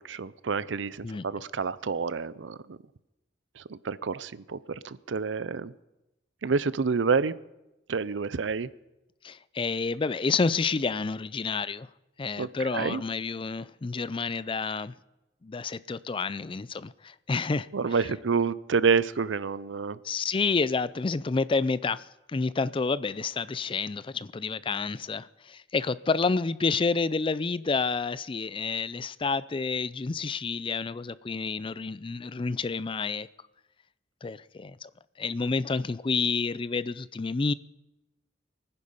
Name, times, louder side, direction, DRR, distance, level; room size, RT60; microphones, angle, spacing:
voice 1, 0.0-2.8 3.6-4.6 4.8-5.7 6.4-7.3 7.9-8.7 12.4-13.0 17.7-20.0, right 5 dB, 90° right, 0.6 m, -28 dB
voice 2, 9.2-11.9 12.2-14.9 15.4-17.7 20.0-33.3 34.2-34.9 35.2-37.5, left 4 dB, 30° left, 0.4 m, -29 dB
23.0 x 10.0 x 5.5 m
head